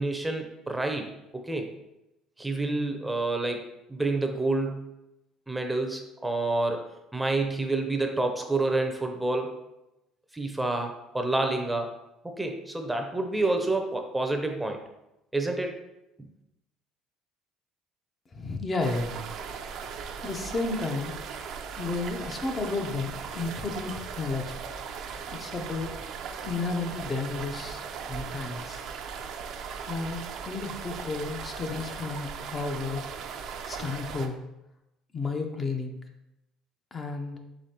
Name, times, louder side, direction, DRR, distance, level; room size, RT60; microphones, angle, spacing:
voice 1, 0.0-1.7 2.4-4.8 5.5-9.5 10.3-11.9 12.2-14.8 15.3-15.8, right 2 dB, 10° right, 4 dB, 0.6 m, -28 dB
voice 2, 18.3-19.3 20.2-21.1 21.8-24.6 25.3-25.9 26.4-28.8 29.8-33.0 33.6-34.4 35.1-35.9 36.9-37.4, left 3 dB, 35° left, 3 dB, 0.6 m, -32 dB
sound 1, 18.8-34.3, right 6 dB, 65° right, 0.5 m, -38 dB
4.9 x 3.7 x 2.8 m, 0.91 s
supercardioid pair, 85°, 0 cm